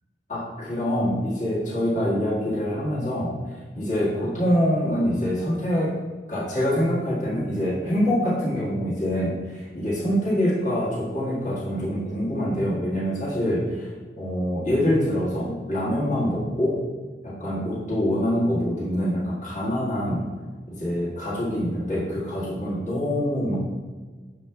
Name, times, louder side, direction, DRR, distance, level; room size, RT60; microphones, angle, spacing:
voice 1, 0.3-3.3 3.8-5.9 6.3-16.8 17.2-20.3 20.7-23.6, equal, 45° left, -8 dB, 1.7 m, -25 dB
6.7 x 4.8 x 3.5 m, 1.4 s
head